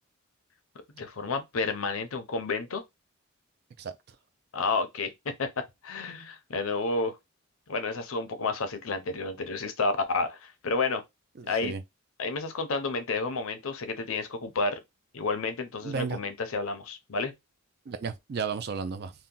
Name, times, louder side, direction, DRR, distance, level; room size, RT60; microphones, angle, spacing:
voice 1, 1.0-2.8 4.5-5.5 5.8-7.2 7.7-11.0 11.5-11.7 12.2-14.8 15.1-17.3, left 3 dB, 75° left, 0.6 m, -30 dB
voice 2, 11.4-11.8 15.8-16.2 17.9-19.1, right 5 dB, 50° right, 0.3 m, -33 dB
2.7 x 2.1 x 3.6 m
head